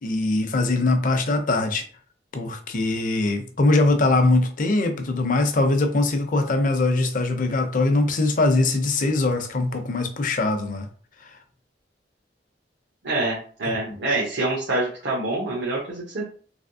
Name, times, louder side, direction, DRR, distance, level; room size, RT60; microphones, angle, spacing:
voice 1, 0.0-1.8 2.3-10.9 11.2-11.3 13.7-13.8, left 2 dB, 50° left, 0.5 m, -22 dB
voice 2, 13.0-16.2, right 2 dB, 85° right, 0.9 m, -26 dB
3.4 x 2.6 x 2.6 m
head